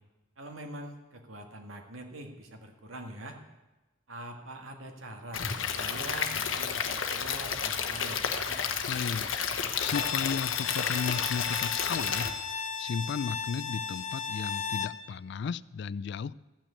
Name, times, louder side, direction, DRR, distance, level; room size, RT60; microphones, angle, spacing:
voice 1, 0.4-3.4 4.1-8.2, right 1 dB, 90° right, 3 dB, 1.8 m, -43 dB
Stream / Liquid, 5.3-12.3, left 7 dB, 75° left, 1.0 m, -31 dB
voice 2, 8.9-9.3 9.8-12.3 12.8-16.3, left 6 dB, 60° left, 19 dB, 0.3 m, -34 dB
Bowed string instrument, 9.8-15.0, left 7 dB, 40° left, 0.7 m, -35 dB
13.5 x 6.1 x 8.4 m, 1.1 s
head